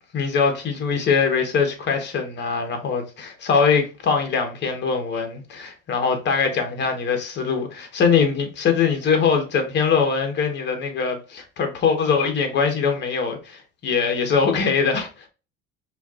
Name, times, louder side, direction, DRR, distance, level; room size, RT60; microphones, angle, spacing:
voice 1, 0.1-15.3, left 5 dB, 35° left, 1.1 m, -22 dB
4.4 x 2.8 x 2.3 m
cardioid pair, 150°, 31 cm